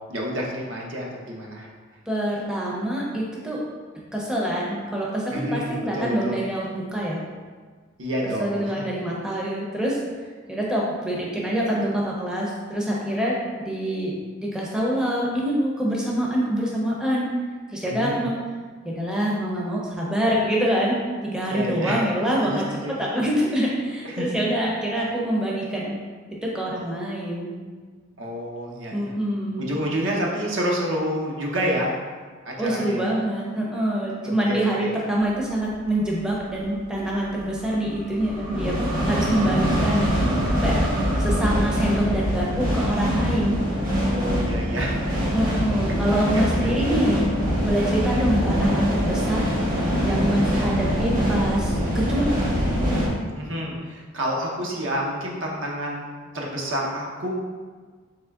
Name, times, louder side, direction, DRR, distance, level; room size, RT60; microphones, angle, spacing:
voice 1, 0.1-1.7 5.3-6.4 8.0-8.7 17.9-18.3 21.5-22.0 22.4-22.9 24.0-24.3 28.2-29.1 29.6-31.9 32.4-33.1 34.2-34.9 43.9-45.2 46.0-46.7 47.9-48.3 53.3-56.1 56.3-57.3, equal, 70° right, -2 dB, 0.8 m, -29 dB
voice 2, 2.1-3.6 4.1-7.2 8.4-10.0 10.5-14.1 14.4-17.3 17.7-18.4 18.8-22.6 23.0-26.0 26.4-27.5 28.9-29.6 32.6-40.1 40.6-40.8 41.2-43.6 45.3-47.3 47.6-49.5 50.1-52.3, equal, 5° right, -5 dB, 0.6 m, -25 dB
sound 1, 35.7-35.8 37.2-53.1, equal, 45° right, 1.0 m, -24 dB
3.5 x 3.1 x 3.5 m, 1.5 s
head